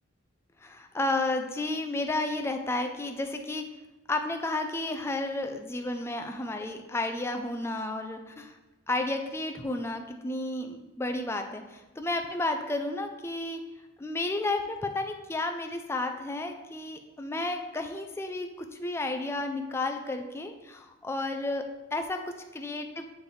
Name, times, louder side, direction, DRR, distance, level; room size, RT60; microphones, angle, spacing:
voice 1, 0.6-3.6 4.1-8.5 8.9-13.6 14.0-21.6 21.9-22.2 22.5-23.0, left 2 dB, 15° left, 5 dB, 0.4 m, -32 dB
9.1 x 3.3 x 3.1 m, 1.1 s
head